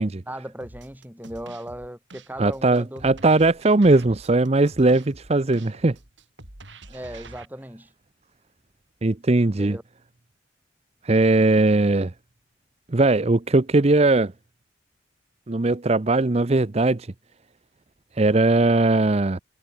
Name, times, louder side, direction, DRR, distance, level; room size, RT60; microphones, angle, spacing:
voice 1, 0.3-3.2 6.9-7.9 9.6-9.8, right 1 dB, 10° right, 5.7 m, -37 dB
sound 1, 0.6-7.4, right 2 dB, 70° right, 4.3 m, -46 dB
voice 2, 2.4-6.0 9.0-9.8 11.0-12.1 12.9-14.3 15.5-17.1 18.1-19.4, right 2 dB, 35° right, 0.7 m, -19 dB
head